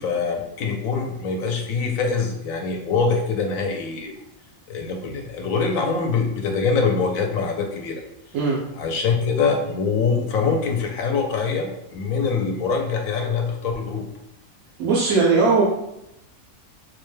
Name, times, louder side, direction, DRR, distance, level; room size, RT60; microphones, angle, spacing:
voice 1, 0.0-4.1 4.7-8.0 8.8-14.1, left 5 dB, 80° left, 3 dB, 1.0 m, -24 dB
voice 2, 14.8-15.6, right 4 dB, 85° right, -3 dB, 1.1 m, -18 dB
4.3 x 2.1 x 3.2 m, 0.83 s
omnidirectional pair, 1.5 m